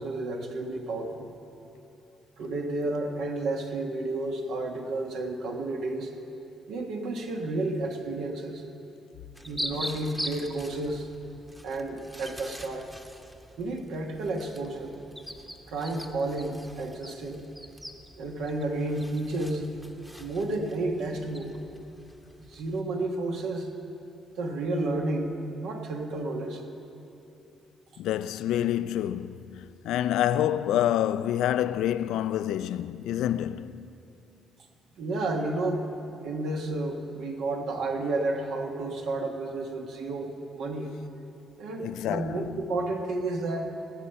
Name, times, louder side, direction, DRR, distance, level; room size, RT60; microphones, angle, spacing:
voice 1, 0.0-1.3 2.4-6.1 6.7-8.6 9.4-11.1 11.6-12.9 13.6-14.9 15.7-17.4 18.1-19.7 20.2-21.5 22.4-23.7 24.4-26.6 35.0-35.8 36.2-40.9 41.6-43.7, right 2 dB, 85° right, 1.4 m, -31 dB
sound 1, 9.3-22.8, equal, 5° right, 0.9 m, -43 dB
voice 2, 28.0-33.9 41.8-42.5, left 11 dB, 85° left, 0.3 m, -27 dB
17.5 x 8.2 x 5.7 m
cardioid pair, 90°, 0 cm